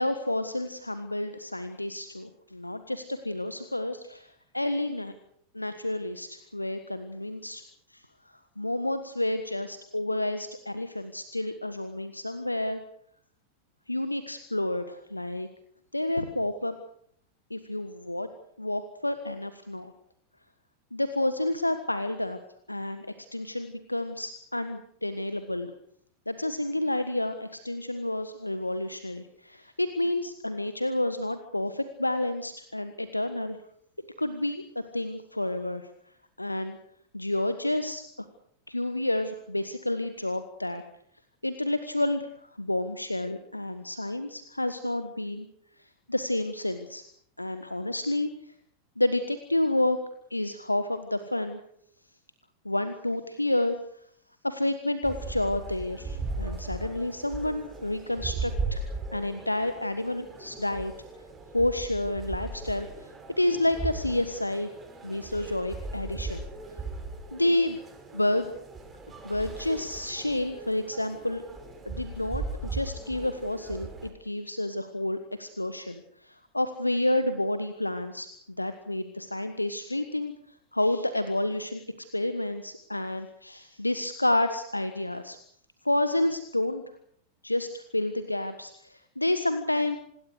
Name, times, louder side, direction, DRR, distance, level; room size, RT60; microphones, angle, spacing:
voice 1, 0.0-5.1 5.5-7.6 7.9-8.0 8.6-12.8 13.9-15.5 15.9-16.7 17.5-18.3 18.6-19.9 20.9-22.4 22.7-25.7 26.3-33.6 34.2-35.9 36.4-36.8 37.1-38.0 38.7-40.8 41.4-42.3 42.6-45.5 46.1-47.0 47.4-48.3 49.0-50.0 50.3-51.6 52.6-53.8 54.4-60.9 61.5-63.1 63.4-64.7 65.0-66.5 67.3-67.8 68.1-68.5 69.2-71.4 71.8-78.3 78.6-80.3 80.7-81.8 82.1-85.4 85.8-86.8 87.4-90.0, left 1 dB, 85° left, 10 dB, 1.4 m, -30 dB
sound 1, 55.0-74.1, right 3 dB, 15° right, 6.3 m, -38 dB
26.5 x 20.5 x 6.6 m, 0.67 s
figure-of-eight pair, 90°, 0 cm